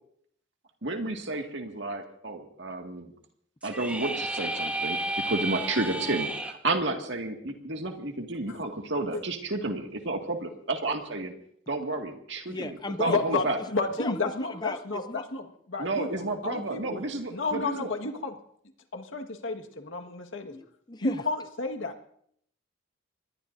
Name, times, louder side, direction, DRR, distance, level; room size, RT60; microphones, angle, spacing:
voice 1, 0.8-3.1 3.6-11.3 11.7-13.6 15.8-17.9, right 2 dB, 65° right, 3 dB, 2.0 m, -31 dB
sound 1, 3.6-6.5, right 1 dB, 5° right, 1.3 m, -32 dB
voice 2, 12.5-13.2 14.0-15.3 20.5-21.2, left 2 dB, 20° left, 11 dB, 0.6 m, -36 dB
voice 3, 13.0-18.3 18.9-20.5 21.0-21.9, left 3 dB, 80° left, 4 dB, 1.7 m, -31 dB
25.5 x 21.0 x 2.7 m, 0.68 s
head